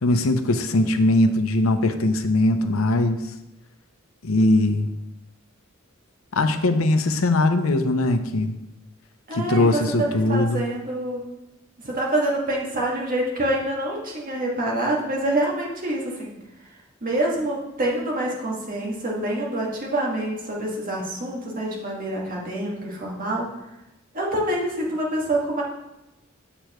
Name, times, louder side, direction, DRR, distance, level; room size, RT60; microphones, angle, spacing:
voice 1, 0.0-3.2 4.2-4.9 6.3-8.6 9.3-10.6, left 2 dB, 90° left, 8 dB, 0.6 m, -20 dB
voice 2, 9.3-11.2 11.8-16.4 17.0-23.5 24.1-25.6, right 1 dB, 45° right, -3 dB, 1.8 m, -26 dB
7.6 x 6.7 x 3.0 m, 0.94 s
head